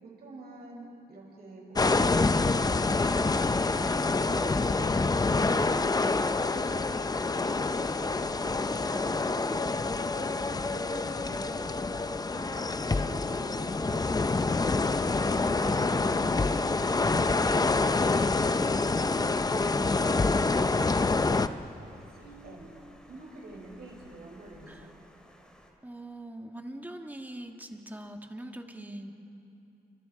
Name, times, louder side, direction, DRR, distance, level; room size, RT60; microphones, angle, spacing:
voice 1, 0.0-2.8 3.2-6.9 7.2-9.8 10.1-11.7 12.3-14.6 16.2-18.7 19.1-20.2 20.7-20.9 21.8-22.7 23.1-24.9, right 2 dB, 75° right, -2 dB, 6.6 m, -46 dB
sound 1, 1.8-21.5, left 3 dB, 25° left, 0.6 m, -27 dB
voice 2, 15.3-16.1 24.7-24.9 25.8-29.1, right 1 dB, 10° right, 4 dB, 1.8 m, -42 dB
Water, 19.5-25.7, equal, 5° left, 3.7 m, -56 dB
29.5 x 26.0 x 4.8 m, 2.8 s
wide cardioid pair, 105°, 16 cm